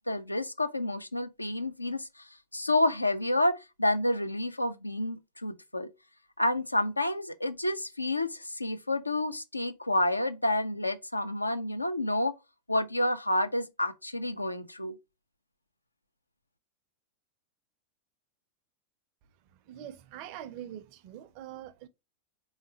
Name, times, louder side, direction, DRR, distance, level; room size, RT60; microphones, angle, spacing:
voice 1, 0.1-5.9 6.4-12.3 12.7-15.0, left 1 dB, 85° left, 0.4 m, -29 dB
voice 2, 19.7-21.9, right 11 dB, 45° right, 0.4 m, -44 dB
3.6 x 3.1 x 2.8 m
figure-of-eight pair, 90°, 0 cm